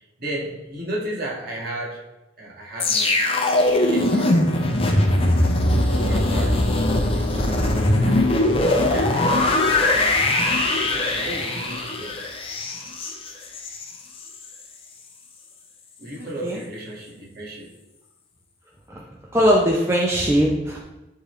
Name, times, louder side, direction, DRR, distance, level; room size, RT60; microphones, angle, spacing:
voice 1, 0.0-2.1 2.4-5.0 5.9-9.5 9.9-10.2 10.7-12.2 16.0-17.7, right 1 dB, 50° right, -4 dB, 1.9 m, -35 dB
sound 1, 2.8-13.9 14.2-14.4, left 1 dB, 30° left, 0.7 m, -20 dB
voice 2, 19.3-20.8, equal, 15° right, -3 dB, 0.7 m, -20 dB
11.0 x 3.8 x 3.3 m, 1.0 s
head